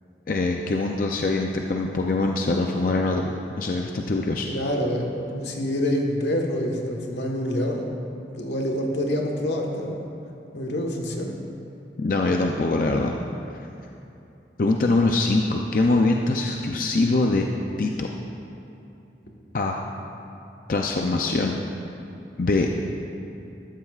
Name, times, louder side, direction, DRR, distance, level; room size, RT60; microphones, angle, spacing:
voice 1, 0.3-4.5 12.0-13.2 14.6-17.5 17.8-18.1 19.5-19.8 20.7-21.6 22.4-22.7, left 2 dB, 50° left, 1 dB, 0.5 m, -23 dB
voice 2, 4.5-7.9 8.4-10.0 10.5-11.4, equal, 85° left, 1 dB, 1.4 m, -26 dB
14.0 x 12.5 x 2.4 m, 2.8 s
head